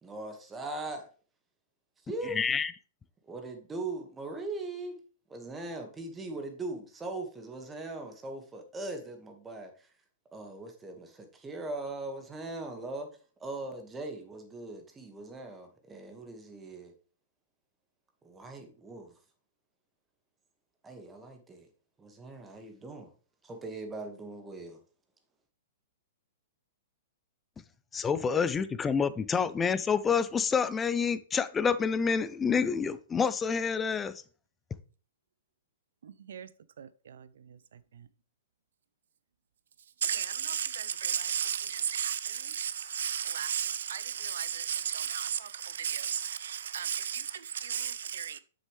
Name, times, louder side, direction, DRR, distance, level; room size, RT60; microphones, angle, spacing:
voice 1, 0.0-1.1 2.1-2.4 3.3-5.0 5.3-9.7 10.3-13.1 13.4-16.9 18.2-19.1 20.8-21.7 22.0-23.1 23.4-24.8, right 2 dB, 15° right, 1.7 m, -40 dB
voice 2, 2.2-2.7 27.9-34.2, left 6 dB, 15° left, 0.5 m, -28 dB
voice 3, 36.8-38.1 40.0-48.4, right 8 dB, 70° right, 0.6 m, -34 dB
7.3 x 6.4 x 3.3 m
hypercardioid pair, 115°, 0 cm